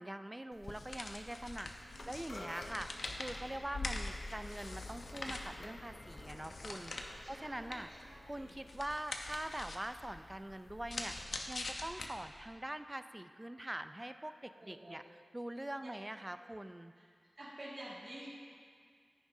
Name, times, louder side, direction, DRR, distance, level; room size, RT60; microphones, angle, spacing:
voice 1, 0.0-7.9 8.2-15.0 15.3-16.9, right 1 dB, 15° right, 9 dB, 0.4 m, -44 dB
sound 1, 0.5-11.2, left 2 dB, 50° left, 0.8 m, -53 dB
sound 2, 0.6-12.5, left 2 dB, 85° left, 0.8 m, -45 dB
voice 2, 1.8-2.6 7.2-8.6 14.6-15.0 15.8-15.9 16.3-16.5 16.9-17.0 17.4-18.3, right 1 dB, 45° right, -9 dB, 2.0 m, -51 dB
15.0 x 10.0 x 2.7 m, 2.1 s
wide cardioid pair, 90°, 0 cm